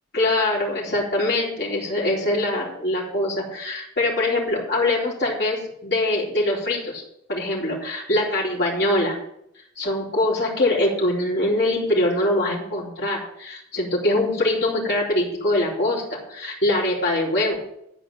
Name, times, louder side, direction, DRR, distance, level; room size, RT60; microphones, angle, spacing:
voice 1, 0.1-7.0 7.3-9.2 9.8-17.6, left 1 dB, 55° left, -4 dB, 4.1 m, -23 dB
12.5 x 5.0 x 8.9 m, 0.77 s
head